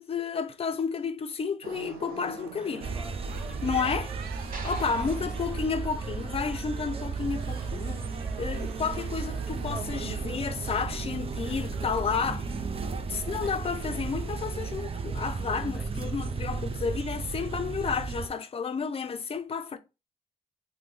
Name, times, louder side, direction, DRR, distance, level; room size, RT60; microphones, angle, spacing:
voice 1, 0.0-2.9 3.6-4.1 4.6-8.1 8.4-12.5 12.9-19.8, left 6 dB, 40° left, 0.5 m, -31 dB
sound 1, 1.6-12.4, right 5 dB, 85° right, 0.6 m, -45 dB
voice 2, 2.6-4.8 5.1-5.5 13.4-13.6 15.7-16.2, right 1 dB, 5° right, 1.0 m, -50 dB
sound 2, 2.8-18.3, right 4 dB, 40° right, 0.5 m, -34 dB
sound 3, 4.5-6.9, right 4 dB, 70° right, 1.0 m, -45 dB
3.5 x 2.1 x 3.2 m
supercardioid pair, 60°, 15 cm